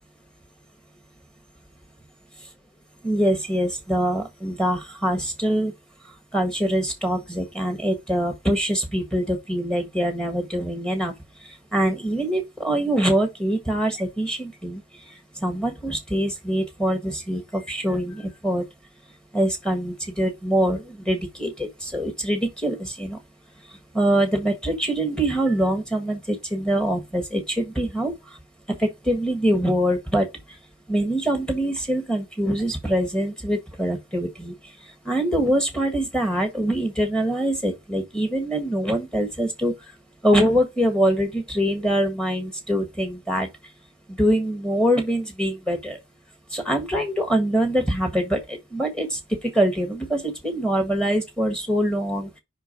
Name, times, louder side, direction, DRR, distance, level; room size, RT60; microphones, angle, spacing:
voice 1, 3.0-5.7 6.3-11.1 11.4-14.8 15.1-18.6 19.3-23.2 23.9-28.4 28.8-30.3 30.9-34.5 35.0-39.7 40.2-43.5 44.1-46.0 46.5-52.3, right 1 dB, 5° left, 1.3 m, -24 dB
5.2 x 4.5 x 5.1 m
head